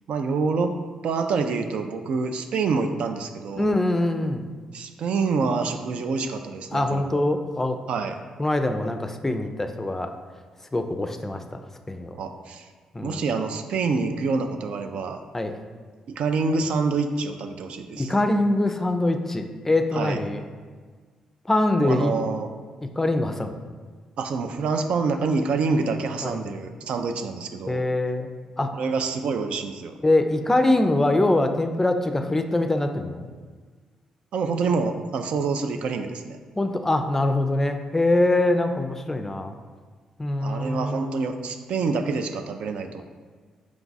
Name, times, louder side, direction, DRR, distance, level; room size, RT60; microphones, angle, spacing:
voice 1, 0.1-0.7 1.0-3.7 4.7-7.2 7.9-8.2 12.1-12.7 13.0-15.2 16.1-18.1 19.9-20.2 21.8-22.5 24.2-27.8 28.7-29.9 34.3-36.4 40.4-43.0, right 4 dB, 70° right, 6 dB, 0.3 m, -26 dB
voice 2, 3.6-4.5 6.7-7.8 8.4-10.1 10.7-12.1 12.9-13.2 15.3-15.5 18.0-20.4 21.5-22.1 22.8-23.5 26.2-26.6 27.7-28.3 28.6-28.8 30.0-33.3 36.6-39.5 40.2-41.2, left 2 dB, 15° left, 6 dB, 0.4 m, -23 dB
4.6 x 2.3 x 4.0 m, 1.5 s
cardioid pair, 70°, 2 cm